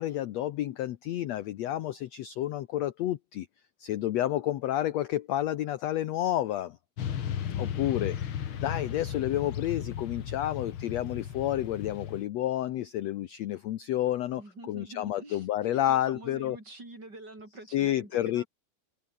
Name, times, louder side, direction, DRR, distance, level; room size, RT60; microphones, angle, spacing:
voice 1, 0.0-3.5 3.8-6.8 7.6-8.2 8.6-14.4 14.7-16.6 17.7-18.4, left 13 dB, 75° left, 1.6 m, -30 dB
Motorcycle / Traffic noise roadway noise, 7.0-12.2, left 9 dB, 55° left, 1.6 m, -35 dB
voice 2, 14.4-18.5, right 2 dB, 25° right, 7.6 m, -46 dB
omnidirectional pair, 4.2 m